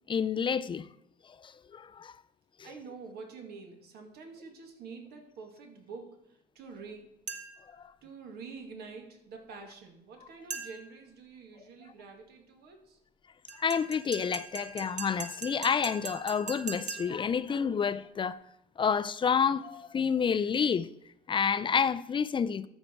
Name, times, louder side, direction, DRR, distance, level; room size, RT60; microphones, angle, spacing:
voice 1, 0.1-0.9 1.7-2.1 13.6-18.4 18.8-20.9 21.3-22.7, left 6 dB, 30° left, 0.4 m, -29 dB
voice 2, 2.6-6.2 6.5-7.0 8.0-13.0, right 5 dB, 70° right, 2.3 m, -47 dB
sound 1, 7.3-7.7 10.5-11.0 13.5-17.3, right 4 dB, 45° right, 1.5 m, -41 dB
13.5 x 6.5 x 4.6 m
cardioid pair, 110°, 17 cm